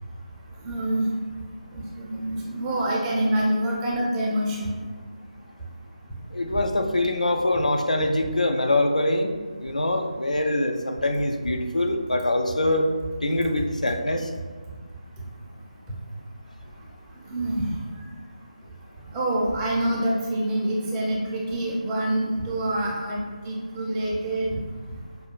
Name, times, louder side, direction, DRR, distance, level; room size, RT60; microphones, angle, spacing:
voice 1, 0.6-1.1 1.7-4.8 17.3-17.7 19.1-24.5, right 1 dB, 10° right, -4 dB, 0.4 m, -26 dB
voice 2, 6.3-9.3 9.6-12.9 13.2-14.3, left 1 dB, 75° left, 4 dB, 0.4 m, -24 dB
5.3 x 2.2 x 2.3 m, 1.5 s
figure-of-eight pair, 155°, 4 cm